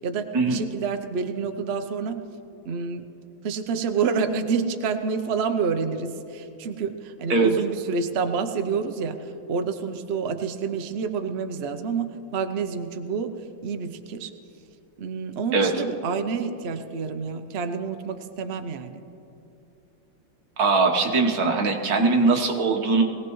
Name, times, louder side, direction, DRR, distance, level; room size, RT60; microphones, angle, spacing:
voice 1, 0.0-2.2 2.6-3.1 3.4-13.3 13.6-14.3 15.0-19.0, right 5 dB, 80° right, 7 dB, 0.5 m, -28 dB
voice 2, 20.6-23.0, right 3 dB, 50° right, 2 dB, 1.6 m, -21 dB
22.0 x 17.5 x 3.1 m, 2.7 s
omnidirectional pair, 2.2 m